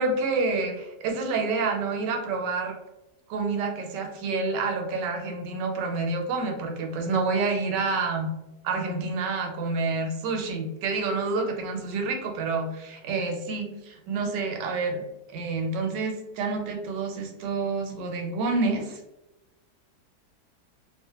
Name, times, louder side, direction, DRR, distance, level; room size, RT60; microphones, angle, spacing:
voice 1, 0.0-2.7 3.3-8.3 8.6-15.0 15.3-19.0, right 3 dB, 85° right, 3 dB, 1.2 m, -28 dB
2.9 x 2.1 x 2.7 m, 0.95 s
omnidirectional pair, 1.8 m